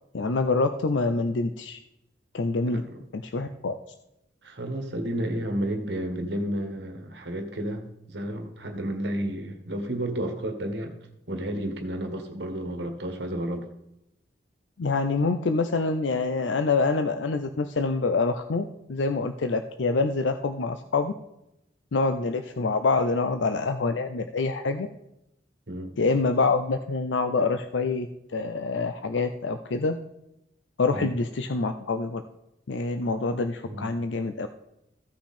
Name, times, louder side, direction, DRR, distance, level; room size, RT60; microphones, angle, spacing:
voice 1, 0.1-1.8 2.3-2.8 3.1-3.7 14.8-21.1 21.9-24.9 26.0-30.0 30.8-32.2 32.7-34.5, left 3 dB, 85° left, 8 dB, 0.6 m, -26 dB
voice 2, 2.7-3.0 4.4-10.9 11.3-13.7 25.7-25.9 30.9-31.1 33.7-33.9, right 1 dB, 70° right, 4 dB, 1.6 m, -31 dB
15.0 x 5.9 x 4.3 m, 0.86 s
head